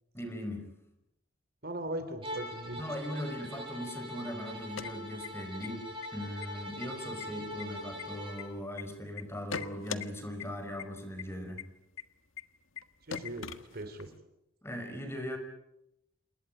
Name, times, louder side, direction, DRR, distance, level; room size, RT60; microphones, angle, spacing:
voice 1, 0.1-0.7 2.8-11.7 14.6-15.4, equal, 15° left, 7 dB, 5.3 m, -39 dB
voice 2, 1.6-2.8 13.1-14.1, right 1 dB, 50° right, 9 dB, 3.5 m, -39 dB
Bowed string instrument, 2.2-8.5, equal, 25° right, 7.9 m, -43 dB
sound 1, 4.5-5.7 6.0-6.1 6.4-6.9 7.2-8.8 9.2-10.1 10.4-10.5 10.8-10.9 11.2-11.3 11.6-11.7 12.0-12.1 12.4-12.5 12.8-12.9 13.1-14.1, left 7 dB, 75° left, 1.6 m, -40 dB
29.0 x 20.0 x 9.2 m, 0.84 s
head